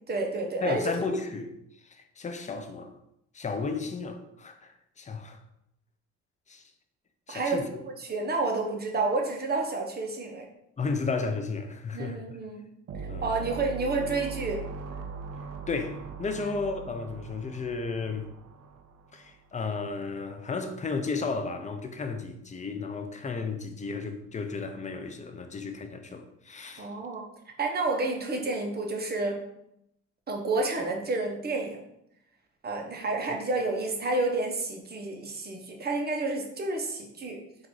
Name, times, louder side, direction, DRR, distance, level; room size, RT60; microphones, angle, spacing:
voice 1, 0.1-0.8 1.1-1.2 7.3-7.6 8.0-10.5 11.9-12.6 13.2-14.6 16.4-16.5 26.8-27.2 27.6-29.4 30.3-31.8 32.6-37.4, right 3 dB, 30° right, 0.9 m, -30 dB
voice 2, 0.6-1.5 1.8-3.0 3.3-5.4 6.5-6.7 7.3-7.8 10.8-12.2 13.1-13.4 15.7-18.3 19.1-26.9, left 4 dB, 25° left, 0.6 m, -33 dB
sound 1, 12.9-19.3, right 4 dB, 55° right, 0.5 m, -40 dB
3.7 x 2.6 x 4.7 m
cardioid pair, 90°, 30 cm